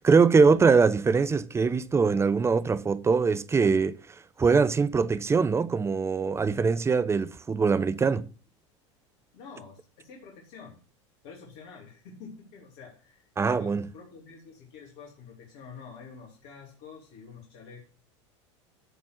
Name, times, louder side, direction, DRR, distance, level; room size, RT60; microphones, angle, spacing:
voice 1, 0.0-4.0 4.4-8.3 13.4-13.9, right 5 dB, 15° right, 0.7 m, -22 dB
voice 2, 9.3-10.8 11.2-17.9, left 5 dB, 65° left, 3.0 m, -47 dB
13.0 x 4.4 x 6.1 m
hypercardioid pair, 85°, 16 cm